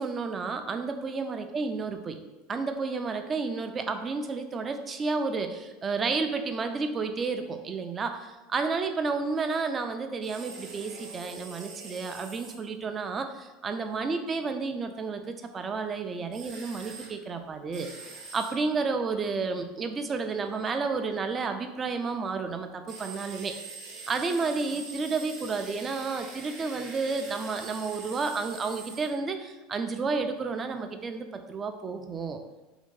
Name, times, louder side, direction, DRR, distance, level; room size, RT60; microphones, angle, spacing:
voice 1, 0.0-2.2 2.5-17.9 18.3-23.6 24.1-32.4, right 4 dB, 30° right, 7 dB, 0.4 m, -31 dB
sound 1, 10.2-12.6 16.3-17.1 17.7-18.5 22.9-29.1, right 3 dB, 60° right, 0.7 m, -44 dB
2.7 x 2.6 x 3.7 m, 1.1 s
supercardioid pair, 100°, 0 cm